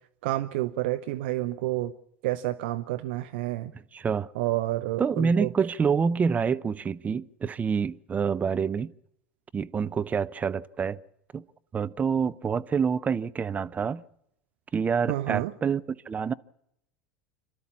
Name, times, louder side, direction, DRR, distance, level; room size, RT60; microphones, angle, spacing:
voice 1, 0.2-1.9 2.2-3.7 4.3-5.5 15.1-15.5, right 16 dB, 65° right, 0.7 m, -29 dB
voice 2, 3.9-4.3 5.0-8.9 9.5-11.0 11.3-11.4 11.7-14.0 14.7-16.3, right 6 dB, 25° right, 0.7 m, -27 dB
28.0 x 13.0 x 7.3 m
hypercardioid pair, 80°, 6 cm